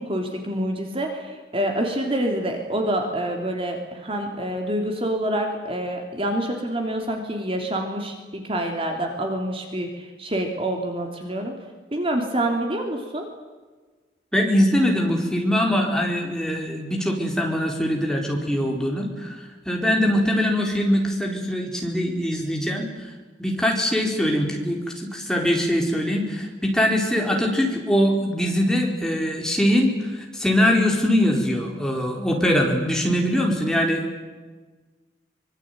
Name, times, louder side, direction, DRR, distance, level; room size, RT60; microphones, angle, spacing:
voice 1, 0.0-11.5 11.9-13.2, right 1 dB, 30° right, 3 dB, 3.2 m, -27 dB
voice 2, 14.3-23.1 23.4-34.1, equal, 5° left, 0 dB, 4.5 m, -22 dB
25.5 x 23.0 x 9.4 m, 1.3 s
head